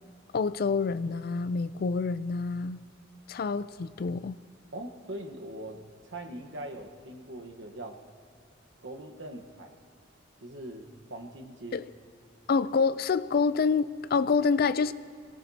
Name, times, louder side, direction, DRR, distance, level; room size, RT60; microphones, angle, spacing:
voice 1, 0.3-2.8 3.3-4.4 11.7-11.8 12.5-14.9, left 5 dB, 50° left, 15 dB, 0.4 m, -27 dB
voice 2, 4.7-8.0 8.8-9.8 10.4-11.9, right 1 dB, 70° right, 3 dB, 1.3 m, -41 dB
24.5 x 18.0 x 2.8 m, 2.4 s
head